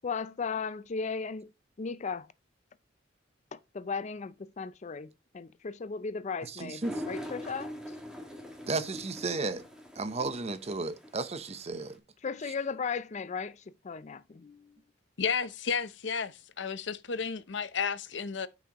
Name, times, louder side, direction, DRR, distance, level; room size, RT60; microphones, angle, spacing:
voice 1, 0.0-1.5 1.8-2.3 3.5-7.7 12.2-14.7, left 5 dB, 40° left, 0.4 m, -36 dB
voice 2, 6.4-6.9 8.7-9.7 10.0-12.0, right 3 dB, 35° right, 0.8 m, -34 dB
sound 1, 6.8-11.9, equal, 5° right, 1.8 m, -43 dB
voice 3, 15.2-18.5, left 6 dB, 70° left, 0.7 m, -32 dB
12.0 x 6.0 x 3.0 m
head